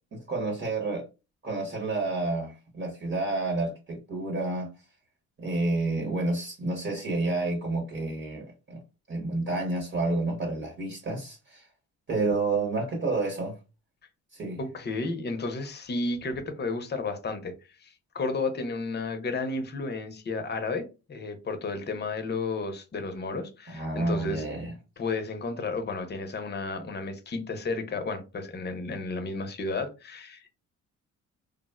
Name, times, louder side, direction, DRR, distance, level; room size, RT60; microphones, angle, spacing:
voice 1, 0.1-1.1 1.4-4.7 5.4-8.8 9.1-11.7 12.1-13.6 14.3-14.6 23.7-24.7, right 2 dB, 40° right, 1.1 m, -29 dB
voice 2, 14.6-17.5 17.8-24.5 25.0-30.5, left 3 dB, 35° left, 0.7 m, -32 dB
3.5 x 2.1 x 2.3 m
cardioid pair, 90°, 30 cm